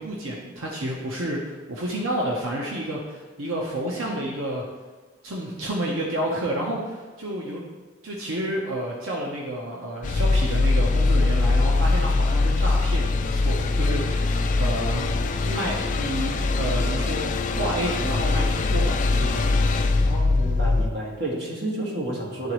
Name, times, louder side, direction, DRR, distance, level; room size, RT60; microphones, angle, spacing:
voice 1, 0.0-4.6 5.2-7.6 8.0-15.1 15.4-16.3 16.6-17.3 17.6-19.5, right 1 dB, 90° right, -3 dB, 0.9 m, -30 dB
sound 1, 10.0-20.9, left 3 dB, 40° left, 0.4 m, -22 dB
voice 2, 20.1-22.5, right 1 dB, 60° right, -4 dB, 1.7 m, -30 dB
11.5 x 3.9 x 3.1 m, 1.3 s
head